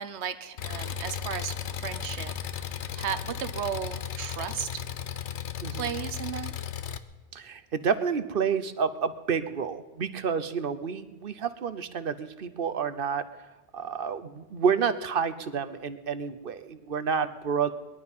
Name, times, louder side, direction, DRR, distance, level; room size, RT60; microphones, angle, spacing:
voice 1, 0.0-2.3 2.6-4.8 5.7-6.5, right 8 dB, 75° right, 10 dB, 1.2 m, -35 dB
Engine, 0.6-7.0, left 8 dB, 80° left, 1.1 m, -35 dB
voice 2, 7.3-13.2 13.7-17.7, right 6 dB, 55° right, 12 dB, 1.0 m, -29 dB
21.0 x 11.5 x 5.6 m, 1.1 s
omnidirectional pair, 1.1 m